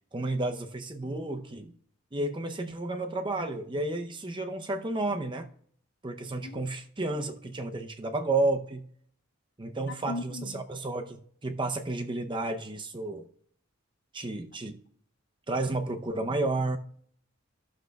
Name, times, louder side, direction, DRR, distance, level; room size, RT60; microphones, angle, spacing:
voice 1, 0.1-1.7 2.1-5.5 6.0-8.8 9.6-13.3 14.1-14.8 15.5-16.8, right 2 dB, 25° right, 0.6 m, -31 dB
voice 2, 9.9-10.6, left 2 dB, 50° left, 0.5 m, -38 dB
15.0 x 6.4 x 2.3 m
head